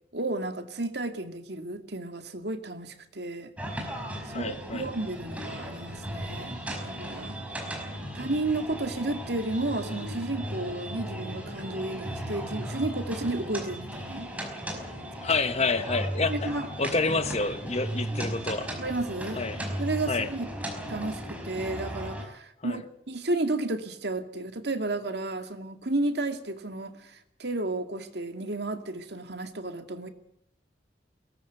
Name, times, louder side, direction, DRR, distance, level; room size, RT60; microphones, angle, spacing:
voice 1, 0.1-3.5 4.3-6.6 6.8-7.4 8.1-14.3 16.3-16.7 18.8-20.5 20.9-30.1, right 2 dB, 60° right, 6 dB, 2.3 m, -32 dB
sound 1, 3.6-22.2, equal, 10° right, 5.2 m, -36 dB
voice 2, 4.3-4.9 15.2-16.5 16.8-18.7 19.4-19.6 20.1-20.3 22.6-22.8, left 3 dB, 35° left, 10 dB, 1.4 m, -28 dB
22.5 x 18.5 x 8.1 m, 0.74 s
head